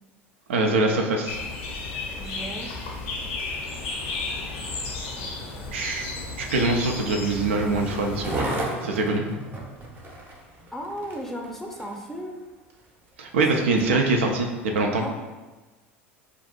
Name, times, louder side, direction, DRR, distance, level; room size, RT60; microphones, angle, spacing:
voice 1, 0.5-1.4 5.7-6.1 6.4-8.5 8.8-9.3 13.2-15.0, right 3 dB, 75° right, 2 dB, 0.4 m, -23 dB
sound 1, 1.3-8.4, left 3 dB, 65° left, 0.6 m, -33 dB
voice 2, 2.1-2.7 4.4-4.6 5.2-5.7 10.7-12.4 13.8-14.0 14.9-15.1, equal, 5° left, 0 dB, 0.5 m, -36 dB
Skateboard, 3.2-12.1 12.7-12.8, right 2 dB, 30° right, 0.7 m, -36 dB
2.6 x 2.4 x 3.6 m, 1.2 s
hypercardioid pair, 75°, 7 cm